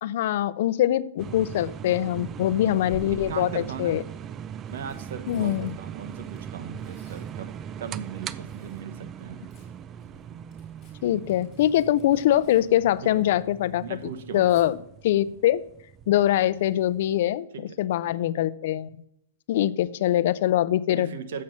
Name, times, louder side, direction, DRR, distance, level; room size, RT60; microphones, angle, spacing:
voice 1, 0.0-4.0 5.3-5.7 11.0-14.0 14.3-14.8 15.0-15.6 16.1-18.9 19.5-21.1, left 12 dB, 60° left, 16 dB, 0.4 m, -23 dB
sound 1, 1.2-17.2, right 9 dB, 25° right, 0.3 m, -40 dB
Tearing, 1.4-1.8 2.9-3.6 4.4-8.9 9.2-13.5 13.8-14.7 16.5-16.8 17.1-17.2, left 4 dB, 20° left, 4.1 m, -50 dB
voice 2, 3.1-4.0 4.7-7.5 7.8-9.5 13.1-13.2 13.8-14.8 17.5-17.6 20.9-21.4, right 7 dB, 70° right, 9 dB, 1.0 m, -38 dB
7.4 x 5.8 x 7.7 m, 0.74 s
supercardioid pair, 155°, 0 cm